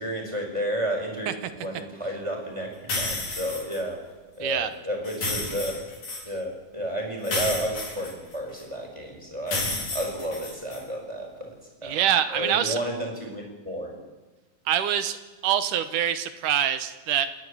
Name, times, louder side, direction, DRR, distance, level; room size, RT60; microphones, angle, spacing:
voice 1, 0.0-4.0 4.4-5.8 6.2-11.5 11.8-14.0, equal, 10° right, 0 dB, 4.7 m, -32 dB
sound 1, 2.9-3.8 5.0-6.2 7.2-8.6 9.5-10.8, left 2 dB, 55° left, 6.2 m, -31 dB
voice 2, 11.8-12.8 14.7-15.2 15.4-17.3, right 10 dB, 75° right, 11 dB, 2.4 m, -25 dB
29.0 x 10.5 x 9.9 m, 1.2 s
omnidirectional pair, 3.9 m